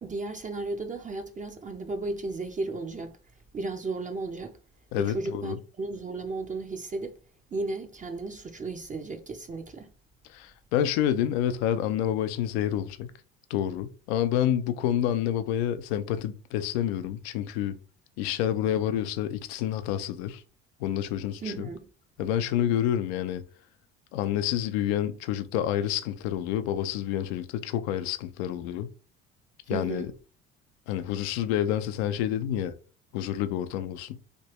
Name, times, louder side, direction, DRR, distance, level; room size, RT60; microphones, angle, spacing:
voice 1, 0.0-3.2 3.5-4.6 4.9-7.1 7.5-9.9 21.4-21.9 29.7-30.1, right 3 dB, 25° right, 0.5 m, -34 dB
voice 2, 4.9-5.6 10.3-13.1 13.5-17.8 18.2-20.4 20.8-21.7 22.2-23.4 24.1-28.9 29.7-30.1 30.9-32.8 33.1-34.2, left 10 dB, 85° left, 0.5 m, -28 dB
3.3 x 2.7 x 2.9 m
hypercardioid pair, 70°, 32 cm